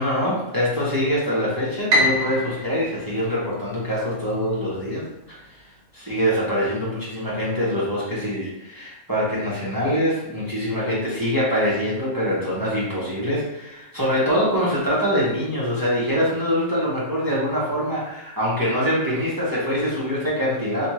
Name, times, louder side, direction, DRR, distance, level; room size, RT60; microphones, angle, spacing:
voice 1, 0.0-5.6 5.9-20.9, equal, 20° right, -7 dB, 0.6 m, -24 dB
Piano, 1.9-4.2, equal, 70° right, 1.1 m, -25 dB
4.2 x 2.2 x 2.9 m, 0.84 s
omnidirectional pair, 1.6 m